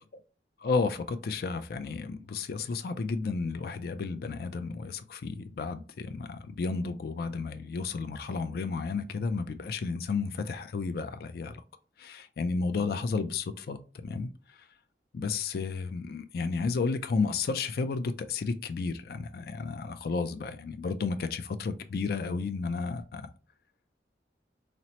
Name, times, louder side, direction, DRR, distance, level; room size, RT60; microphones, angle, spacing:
voice 1, 0.6-11.6 12.0-14.3 15.1-23.3, left 4 dB, 55° left, 0.3 m, -32 dB
4.1 x 2.0 x 2.8 m
head